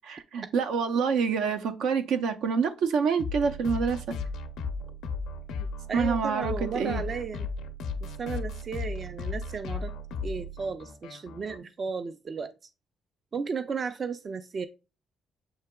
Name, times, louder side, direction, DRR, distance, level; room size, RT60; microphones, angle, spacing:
voice 1, 0.1-4.2 5.9-7.0, right 6 dB, 85° right, 0.6 m, -27 dB
sound 1, 3.2-11.6, left 4 dB, 85° left, 0.6 m, -35 dB
voice 2, 5.6-7.5 8.0-9.9 10.2-12.5 13.3-14.7, right 5 dB, 45° right, 0.4 m, -34 dB
7.8 x 2.8 x 2.2 m
cardioid pair, 90°, 0 cm